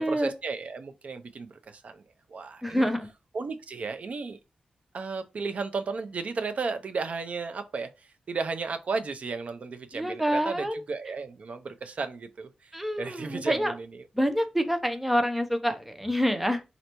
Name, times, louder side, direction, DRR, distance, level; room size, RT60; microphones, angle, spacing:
voice 1, 0.0-2.0 2.3-2.9 3.3-4.4 4.9-7.9 8.3-12.7 13.0-13.9, right 4 dB, 60° right, 0.5 m, -34 dB
voice 2, 2.6-3.1 9.9-10.8 12.7-13.7 14.2-16.6, equal, 5° right, 0.6 m, -27 dB
4.0 x 3.3 x 2.9 m
wide cardioid pair, 125°, 3 cm